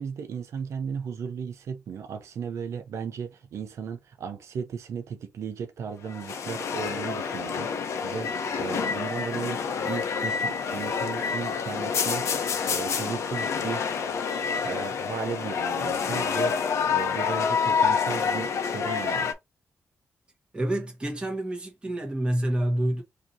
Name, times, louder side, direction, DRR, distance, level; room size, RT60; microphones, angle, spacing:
voice 1, 0.0-8.3 8.6-14.1 14.6-16.5 16.9-19.3, right 7 dB, 85° right, 0.6 m, -36 dB
sound 1, 6.1-19.3, left 6 dB, 85° left, 0.8 m, -28 dB
voice 2, 20.5-23.0, right 1 dB, 20° right, 1.5 m, -28 dB
4.8 x 2.9 x 2.7 m
wide cardioid pair, 150°, 5 cm